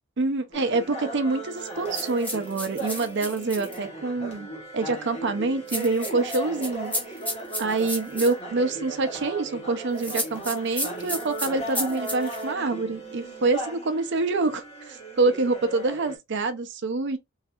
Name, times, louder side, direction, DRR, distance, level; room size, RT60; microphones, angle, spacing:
voice 1, 0.2-6.9 7.6-17.2, right 3 dB, 60° right, 0.6 m, -26 dB
sound 1, 0.5-16.2, right 2 dB, 30° left, 1.2 m, -37 dB
sound 2, 1.9-3.8 5.7-8.3 10.0-12.4, left 1 dB, 10° left, 0.9 m, -32 dB
3.2 x 2.7 x 2.4 m
head